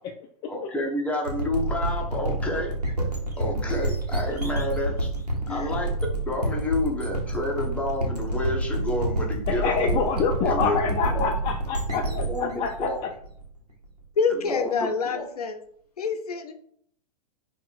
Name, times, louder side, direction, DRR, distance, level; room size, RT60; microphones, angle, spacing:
voice 1, 0.5-2.7 3.4-5.1 5.5-5.9 6.2-10.0 10.4-11.3 12.0-13.1 14.3-15.3, left 1 dB, 5° left, 0 dB, 0.8 m, -30 dB
sound 1, 1.2-13.9, right 2 dB, 85° right, 1.0 m, -28 dB
voice 2, 9.5-13.1, left 5 dB, 25° left, 3 dB, 0.3 m, -27 dB
voice 3, 14.2-15.6 16.0-16.5, left 5 dB, 70° left, 8 dB, 0.6 m, -27 dB
4.2 x 2.5 x 4.1 m, 0.64 s
figure-of-eight pair, 100°, 20 cm